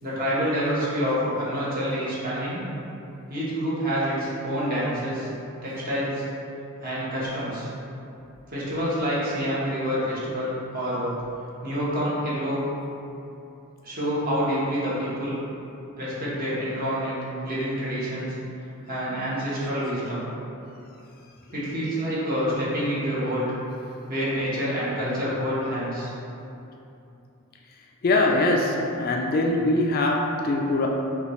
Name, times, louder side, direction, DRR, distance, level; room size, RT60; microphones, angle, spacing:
voice 1, 0.0-2.6 3.3-5.3 5.6-6.3 6.8-7.7 8.5-11.2 11.6-12.6 13.8-15.3 16.0-18.3 18.9-20.2 21.5-23.5 24.1-26.1, equal, 40° right, -9 dB, 1.1 m, -27 dB
voice 2, 28.0-30.9, left 2 dB, 45° left, 0 dB, 0.3 m, -22 dB
5.4 x 2.4 x 3.1 m, 2.8 s
head